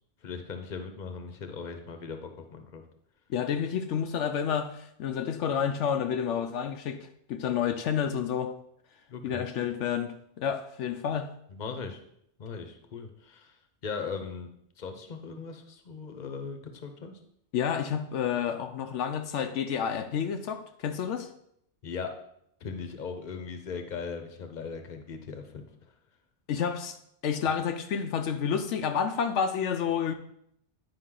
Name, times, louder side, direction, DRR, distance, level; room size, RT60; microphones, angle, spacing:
voice 1, 0.2-2.8 9.1-9.4 11.5-12.0 12.4-13.6 13.8-14.5 14.8-17.2 21.8-22.2 22.6-25.9, left 5 dB, 40° left, 0.9 m, -39 dB
voice 2, 3.3-8.5 9.2-11.3 17.5-21.3 26.5-27.0 27.2-30.1, left 7 dB, 80° left, 0.9 m, -30 dB
9.8 x 5.3 x 3.8 m
omnidirectional pair, 1.2 m